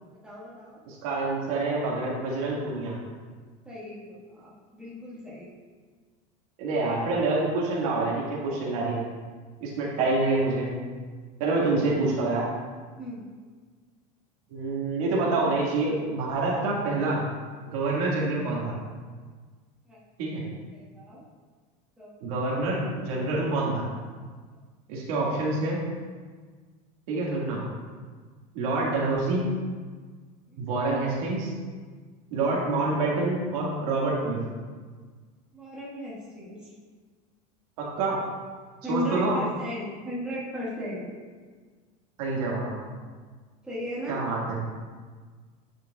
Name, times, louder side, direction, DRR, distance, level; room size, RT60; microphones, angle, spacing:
voice 1, 0.1-0.8 3.6-5.5 11.6-11.7 13.0-13.3 19.9-20.0 20.7-21.2 22.0-22.3 30.5-30.6 35.5-36.7 38.8-41.0 43.6-44.2, equal, 5° right, -8 dB, 1.5 m, -36 dB
voice 2, 0.9-2.9 6.6-9.0 9.6-10.8 11.4-12.5 14.5-17.3 17.6-18.8 20.2-20.4 22.2-23.9 24.9-25.8 27.1-27.6 28.5-29.5 30.6-31.5 32.3-34.4 37.8-38.3 38.9-39.4 42.2-42.7 44.1-44.6, right 2 dB, 70° right, -4 dB, 1.8 m, -27 dB
9.6 x 5.2 x 2.3 m, 1.5 s
supercardioid pair, 155°, 19 cm